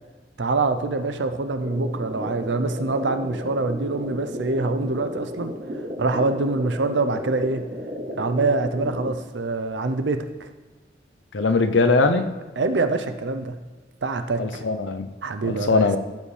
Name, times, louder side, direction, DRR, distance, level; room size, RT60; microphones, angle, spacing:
voice 1, 0.4-5.5 6.0-7.6 8.2-10.2 12.6-13.6 14.0-14.6 15.2-15.9, right 3 dB, 85° right, 9 dB, 0.6 m, -25 dB
sound 1, 1.6-9.1, equal, 45° right, 0.8 m, -33 dB
voice 2, 11.3-12.4 14.4-15.1 15.4-16.0, left 3 dB, 90° left, 8 dB, 0.6 m, -21 dB
14.5 x 5.5 x 3.3 m, 1.3 s
head